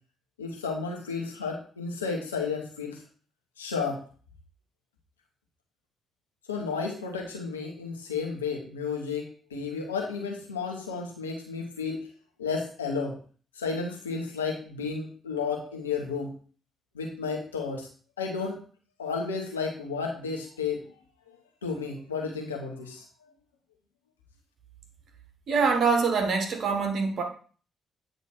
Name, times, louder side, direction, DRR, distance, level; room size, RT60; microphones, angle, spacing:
voice 1, 0.4-3.0 3.6-4.0 6.5-12.1 12.4-13.2 13.6-16.3 16.9-17.9 18.2-18.6 19.0-20.8 21.6-23.0, left 5 dB, 85° left, 1 dB, 1.0 m, -32 dB
voice 2, 25.5-27.2, right 5 dB, 55° right, 4 dB, 1.4 m, -24 dB
8.8 x 3.1 x 4.3 m, 0.41 s
figure-of-eight pair, 40°, 0 cm